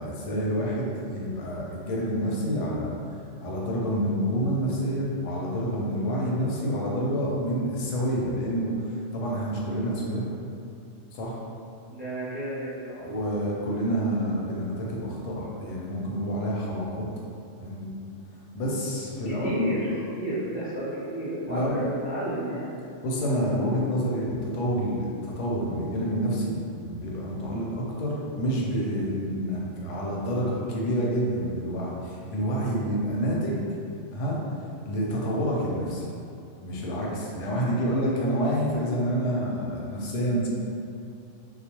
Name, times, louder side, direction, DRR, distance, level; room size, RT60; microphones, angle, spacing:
voice 1, 0.0-2.9 3.4-8.7 9.1-10.2 11.1-11.4 13.0-17.1 17.6-17.9 18.5-19.5 21.5-21.8 23.0-33.6 34.1-34.4 34.8-36.1 36.6-40.5, equal, 90° left, -4 dB, 0.9 m, -28 dB
voice 2, 11.9-13.1 19.2-21.8 22.0-22.8 27.4-27.5, equal, 15° right, -11 dB, 0.3 m, -31 dB
2.3 x 2.1 x 2.8 m, 2.5 s
omnidirectional pair, 1.2 m